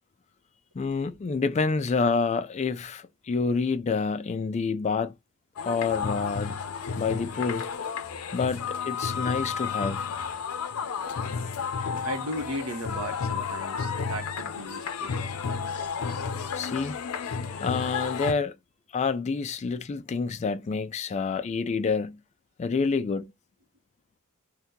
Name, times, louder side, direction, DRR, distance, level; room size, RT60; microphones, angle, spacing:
voice 1, 0.7-5.1 5.6-6.6 7.0-7.7 8.3-10.1 16.5-17.0 17.6-18.5 18.9-22.2 22.6-23.3, left 4 dB, 30° left, 0.3 m, -28 dB
sound 1, 5.6-18.3, left 6 dB, 85° left, 0.5 m, -32 dB
voice 2, 12.0-15.1, equal, 70° right, 0.8 m, -36 dB
2.7 x 2.2 x 3.6 m
head